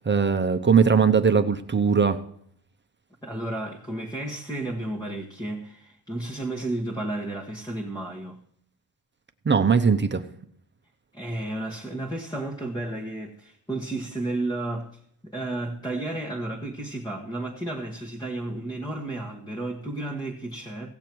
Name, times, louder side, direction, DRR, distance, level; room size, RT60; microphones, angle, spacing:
voice 1, 0.1-2.2 9.4-10.2, right 6 dB, 25° right, 0.8 m, -20 dB
voice 2, 3.2-8.4 11.1-14.9 15.2-20.9, right 2 dB, 10° left, 1.3 m, -32 dB
17.5 x 6.9 x 4.6 m
cardioid pair, 100°, 43 cm